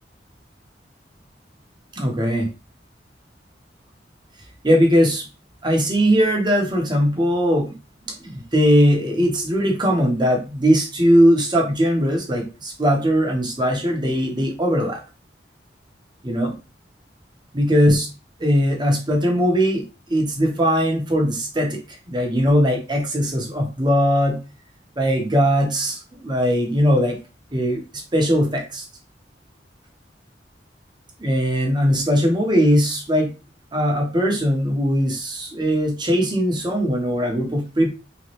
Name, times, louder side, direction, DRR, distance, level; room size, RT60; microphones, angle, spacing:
voice 1, 2.0-2.5 4.6-5.3 5.6-7.7 8.1-15.0 16.2-16.5 17.5-18.1 18.4-19.8 20.1-21.8 22.1-24.4 25.0-27.2 27.5-28.8 31.2-33.3 33.7-37.9, equal, 25° right, 2 dB, 1.0 m, -20 dB
3.7 x 3.1 x 2.9 m, 0.30 s
head